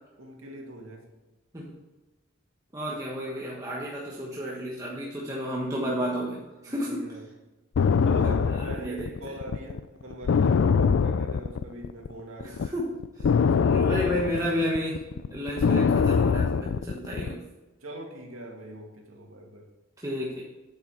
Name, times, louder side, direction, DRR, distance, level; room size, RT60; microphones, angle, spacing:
voice 1, 0.2-1.1 6.7-7.2 8.0-12.6 13.2-14.7 17.8-19.6, right 1 dB, 85° right, 0 dB, 2.3 m, -42 dB
voice 2, 2.7-7.1 8.5-9.1 12.4-12.9 13.6-17.4 20.0-20.4, equal, 15° right, -4 dB, 1.3 m, -32 dB
sound 1, 7.7-12.1 12.4-17.3, left 6 dB, 65° left, 0.4 m, -23 dB
8.7 x 8.6 x 4.7 m, 1.1 s
head